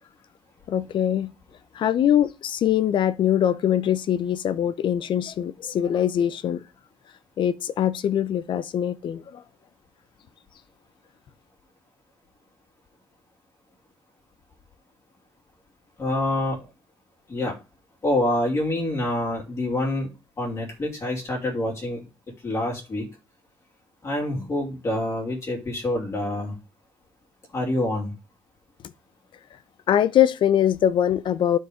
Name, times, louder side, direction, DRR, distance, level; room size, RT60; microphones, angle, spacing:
voice 1, 0.7-1.3 1.8-6.6 7.4-9.4 29.9-31.6, left 10 dB, 60° left, 0.7 m, -22 dB
voice 2, 16.0-16.6 17.3-17.6 18.0-20.1 20.4-22.0 22.4-23.0 24.0-26.5 27.5-28.1, left 1 dB, 30° left, 2.9 m, -26 dB
12.0 x 4.6 x 5.0 m
cardioid pair, 135°, 9 cm